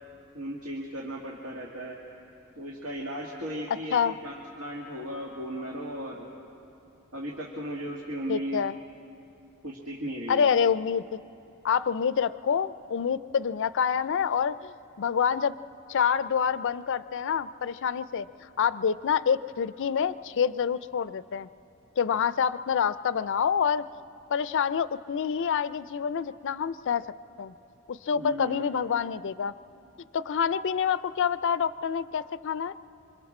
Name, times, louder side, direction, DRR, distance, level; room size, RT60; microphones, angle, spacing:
voice 1, 0.3-2.0 2.6-6.3 7.1-8.6 9.6-10.5 28.1-28.8, equal, 80° right, -3 dB, 2.1 m, -36 dB
voice 2, 8.3-8.7 10.3-11.2 11.6-15.5 15.9-21.5 22.0-23.8 24.3-27.1 27.4-27.5 27.9-29.5 30.1-32.7, left 7 dB, 60° left, 15 dB, 0.4 m, -27 dB
27.5 x 26.0 x 4.3 m, 2.9 s
head